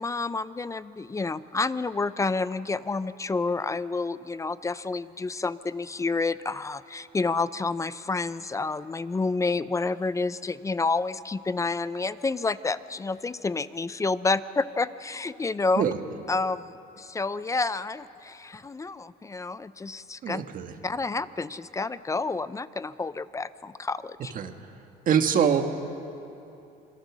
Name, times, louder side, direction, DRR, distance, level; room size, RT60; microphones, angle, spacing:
voice 1, 0.0-15.8 16.3-16.7 17.0-20.4 20.8-24.3, left 3 dB, 20° left, 15 dB, 0.5 m, -29 dB
voice 2, 20.2-20.7 24.3-24.5 25.1-25.6, right 8 dB, 55° right, 6 dB, 1.6 m, -23 dB
26.5 x 22.0 x 6.2 m, 2.8 s
cardioid pair, 110°, 17 cm